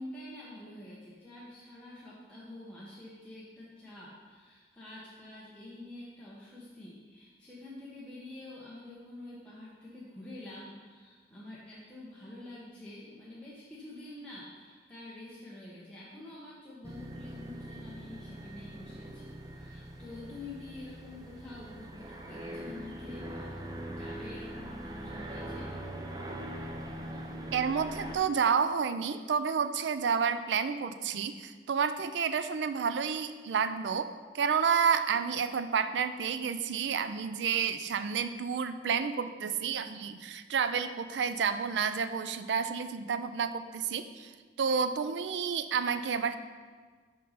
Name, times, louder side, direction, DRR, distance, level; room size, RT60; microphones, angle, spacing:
voice 1, 0.0-25.8, left 1 dB, 5° left, -8 dB, 0.9 m, -47 dB
sound 1, 16.8-28.2, right 1 dB, 20° right, 0.6 m, -42 dB
voice 2, 27.5-34.1 34.3-46.4, right 6 dB, 85° right, 11 dB, 0.4 m, -30 dB
5.4 x 5.3 x 5.6 m, 1.5 s
head